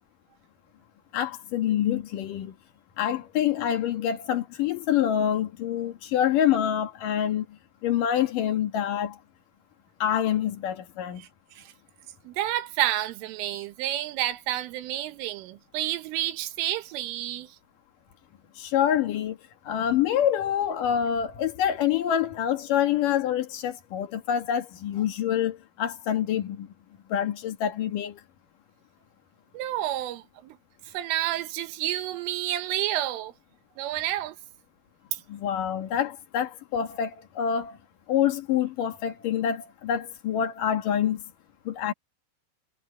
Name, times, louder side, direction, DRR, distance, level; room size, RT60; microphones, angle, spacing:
voice 1, 1.1-2.5 3.0-7.5 7.8-9.2 10.0-11.2 18.6-19.4 19.7-26.7 27.1-28.2 35.3-37.8 38.1-41.2 41.7-41.9, left 10 dB, 60° left, 2.4 m, -26 dB
voice 2, 12.3-17.6 29.5-30.6 30.9-33.3 33.8-34.4 35.1-35.2, right 13 dB, 85° right, 3.9 m, -30 dB
omnidirectional pair, 5.6 m